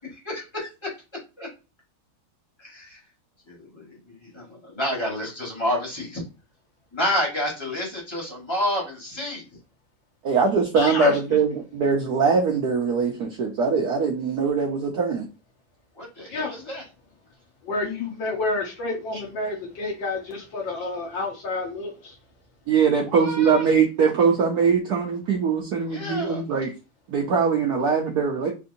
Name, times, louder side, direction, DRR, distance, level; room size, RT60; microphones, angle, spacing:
voice 1, 0.1-0.9 1.4-1.5 2.6-3.0 3.4-6.2 6.9-9.5 16.0-16.8 23.1-23.7 25.9-26.4, left 1 dB, 15° left, 1.2 m, -29 dB
voice 2, 10.2-15.3 22.7-26.7 27.1-28.5, right 5 dB, 70° right, 0.9 m, -22 dB
voice 3, 10.7-11.4 16.3-16.6 17.6-22.2, left 3 dB, 65° left, 1.6 m, -29 dB
4.5 x 2.6 x 2.6 m
omnidirectional pair, 2.3 m